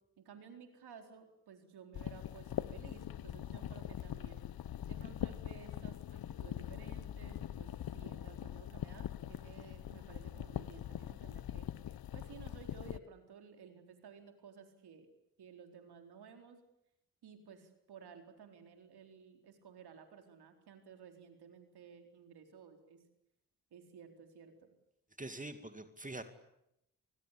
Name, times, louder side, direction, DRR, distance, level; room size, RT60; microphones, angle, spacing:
voice 1, 0.2-4.4 4.9-11.7 12.1-15.1 15.4-16.6 17.2-23.0 23.7-24.7, right 6 dB, 80° right, 6 dB, 4.2 m, -55 dB
sound 1, 1.9-13.0, left 11 dB, 65° left, 0.9 m, -43 dB
voice 2, 25.2-26.2, right 2 dB, 20° right, 9 dB, 2.4 m, -44 dB
29.0 x 20.5 x 8.5 m, 0.81 s
supercardioid pair, 55°, 39 cm